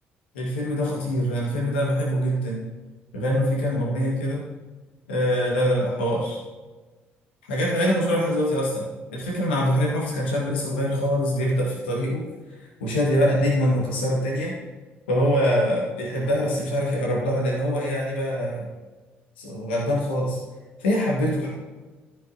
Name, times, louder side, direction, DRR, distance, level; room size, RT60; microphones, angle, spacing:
voice 1, 0.3-2.6 3.1-4.4 5.1-6.4 7.5-12.3 12.8-14.5 15.1-18.7 19.4-20.4 20.8-21.5, equal, 85° left, -3 dB, 1.7 m, -24 dB
13.0 x 5.8 x 2.8 m, 1.3 s
hypercardioid pair, 50°, 6 cm